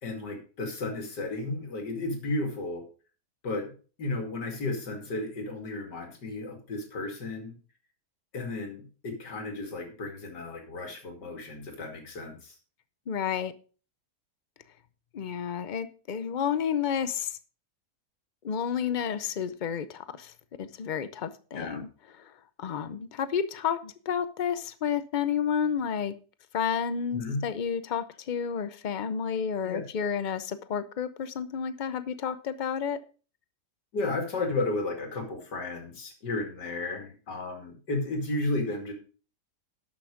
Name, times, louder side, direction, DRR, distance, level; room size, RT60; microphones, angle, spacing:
voice 1, 0.0-2.8 3.4-3.7 4.0-7.5 8.3-12.6 21.5-21.8 27.1-27.4 29.6-29.8 33.9-38.9, left 2 dB, 85° left, 2.9 m, -33 dB
voice 2, 13.1-13.5 15.1-17.4 18.4-21.9 22.2-22.3 22.6-26.1 26.5-33.0, left 7 dB, 65° left, 0.4 m, -31 dB
11.5 x 6.3 x 5.0 m
omnidirectional pair, 1.8 m